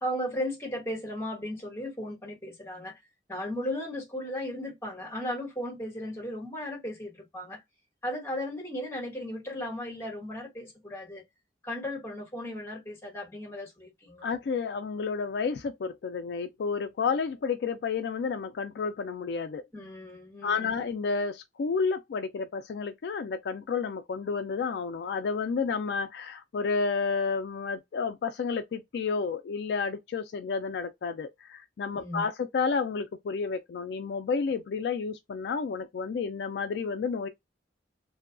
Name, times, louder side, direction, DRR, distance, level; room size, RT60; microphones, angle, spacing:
voice 1, 0.0-3.0 3.3-7.6 8.0-11.2 11.6-14.3 19.7-20.8 31.9-32.3, left 1 dB, 15° left, 1.1 m, -36 dB
voice 2, 14.2-19.6 20.4-37.3, left 5 dB, 65° left, 0.3 m, -31 dB
2.7 x 2.2 x 2.5 m
head